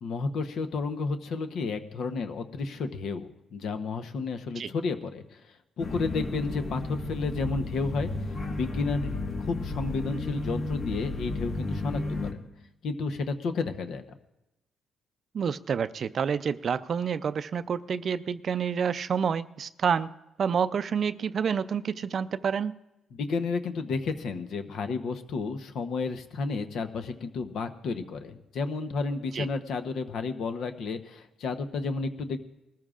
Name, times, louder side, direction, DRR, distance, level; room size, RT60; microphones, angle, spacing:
voice 1, 0.0-5.4 5.8-8.1 8.5-12.5 12.8-14.2 23.1-32.4, left 4 dB, 70° left, 8 dB, 0.9 m, -32 dB
sound 1, 5.8-12.3, left 2 dB, 50° left, 1.6 m, -33 dB
voice 2, 15.3-20.1 20.4-22.7 29.3-29.5, right 7 dB, 50° right, 13 dB, 0.4 m, -28 dB
20.0 x 14.0 x 2.5 m, 0.94 s
cardioid pair, 90°, 0 cm